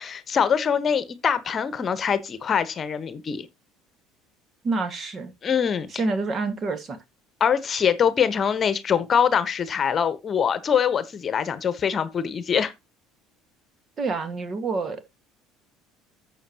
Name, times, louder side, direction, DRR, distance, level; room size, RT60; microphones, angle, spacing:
voice 1, 0.0-3.5 5.4-6.0 7.4-12.7, left 7 dB, 35° left, 1.1 m, -23 dB
voice 2, 4.6-5.3 5.9-7.0 14.0-15.0, right 3 dB, 35° right, 1.7 m, -27 dB
12.0 x 7.5 x 3.0 m
figure-of-eight pair, 65°, 0 cm